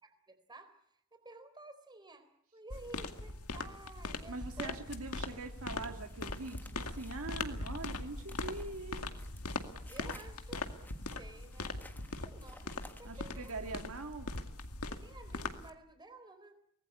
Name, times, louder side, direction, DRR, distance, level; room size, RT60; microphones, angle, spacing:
voice 1, 0.0-4.7 9.9-13.8 14.9-16.6, right 2 dB, 20° right, 8 dB, 4.0 m, -53 dB
sound 1, 2.7-15.7, left 2 dB, 75° left, 2.2 m, -41 dB
voice 2, 4.3-9.1 13.0-14.3, right 3 dB, 65° right, 5 dB, 2.1 m, -43 dB
sound 2, 6.1-13.8, left 1 dB, 10° left, 1.5 m, -57 dB
24.5 x 19.5 x 9.9 m, 0.69 s
head